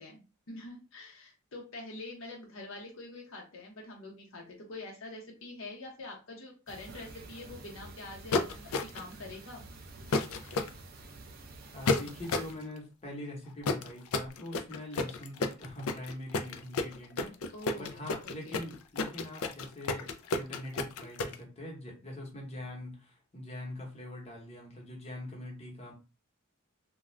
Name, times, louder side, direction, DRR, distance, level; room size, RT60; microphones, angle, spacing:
voice 1, 0.0-9.6 17.5-18.0 18.4-18.6, left 2 dB, 65° left, 0 dB, 0.7 m, -45 dB
sound 1, 6.7-12.5, right 2 dB, 45° right, 0.4 m, -49 dB
sound 2, 8.3-9.1 10.1-10.7 11.9-12.5 13.6-21.3, left 3 dB, 85° left, 0.4 m, -31 dB
voice 2, 11.7-25.9, left 1 dB, 30° left, -2 dB, 1.0 m, -43 dB
2.4 x 2.2 x 3.1 m, 0.31 s
head